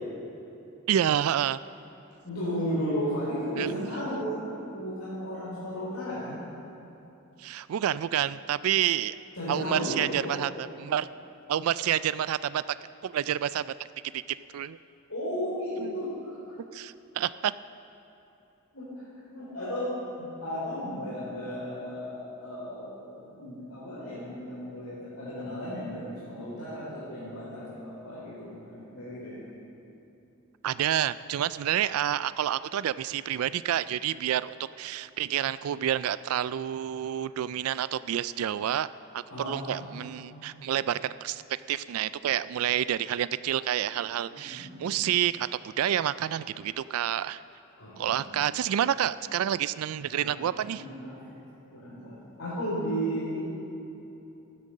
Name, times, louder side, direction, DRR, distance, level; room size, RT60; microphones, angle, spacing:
voice 1, 0.9-1.6 3.6-3.9 7.4-9.1 9.5-11.1 11.5-12.6 13.0-13.7 14.1-14.2 14.5-14.8 15.8-15.9 16.7-17.5 30.6-38.9 39.1-41.4 41.7-47.4 48.0-50.8, right 10 dB, 90° right, 16 dB, 0.3 m, -29 dB
voice 2, 2.2-6.4 9.4-10.4 15.1-16.4 18.7-18.9 19.3-19.9 20.2-29.4 39.3-40.7 44.3-44.9 47.8-48.5 50.1-51.2 51.7-53.4, equal, 85° left, -10 dB, 4.1 m, -35 dB
15.0 x 11.0 x 6.5 m, 2.9 s
head